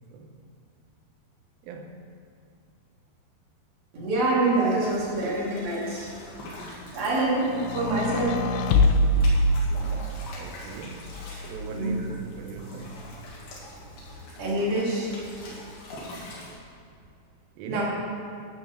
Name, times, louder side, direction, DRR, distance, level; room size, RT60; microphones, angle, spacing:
voice 1, 1.6-2.0 10.4-11.1 11.5-13.1 17.6-17.8, right 4 dB, 80° right, 4 dB, 2.2 m, -39 dB
voice 2, 3.9-6.1 6.7-8.3 11.7-12.0 14.4-15.1 17.6-17.8, right 2 dB, 55° right, -6 dB, 4.4 m, -26 dB
sound 1, 4.8-16.6, left 1 dB, 75° left, 4.1 m, -43 dB
sound 2, 7.5-10.3 11.1-12.1, left 1 dB, 90° left, 2.9 m, -24 dB
12.5 x 8.0 x 6.4 m, 2.4 s
omnidirectional pair, 5.0 m